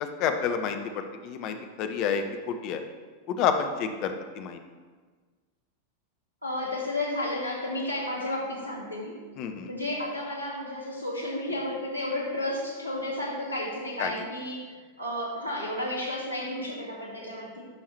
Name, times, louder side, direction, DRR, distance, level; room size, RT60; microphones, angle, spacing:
voice 1, 0.0-2.8 3.3-4.6 9.4-9.7 14.0-14.2, left 7 dB, 40° left, 7 dB, 0.8 m, -29 dB
voice 2, 6.4-9.1 9.7-17.6, left 1 dB, 85° right, -4 dB, 2.1 m, -32 dB
11.5 x 5.6 x 3.3 m, 1.4 s
figure-of-eight pair, 90°, 0 cm